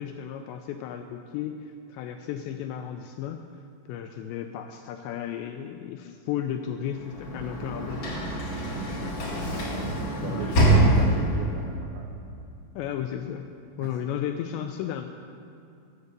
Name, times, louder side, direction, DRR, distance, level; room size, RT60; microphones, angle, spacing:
voice 1, 0.0-3.4 3.9-8.3 9.0-9.3 10.2-10.5 10.7-10.8 12.8-13.5 13.8-15.1, left 9 dB, 85° left, 6 dB, 2.6 m, -34 dB
Sliding door / Slam, 6.9-11.6, right 1 dB, 45° left, 2.4 m, -25 dB
voice 2, 8.6-9.2 10.2-12.1 13.8-14.1, right 5 dB, 75° right, 2 dB, 2.3 m, -38 dB
15.0 x 8.2 x 6.6 m, 2.5 s
omnidirectional pair, 5.5 m